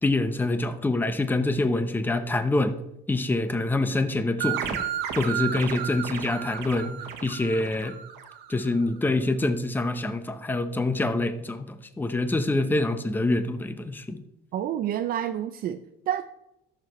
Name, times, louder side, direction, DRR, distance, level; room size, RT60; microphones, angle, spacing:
voice 1, 0.0-2.7 3.1-4.8 5.2-7.0 7.2-8.0 8.5-14.2, left 2 dB, 10° left, 9 dB, 0.7 m, -26 dB
sound 1, 4.4-8.7, right 10 dB, 90° right, 1.2 m, -33 dB
voice 2, 14.5-16.2, right 11 dB, 60° right, 8 dB, 0.5 m, -29 dB
14.0 x 6.7 x 3.1 m, 0.84 s
cardioid pair, 110°, 17 cm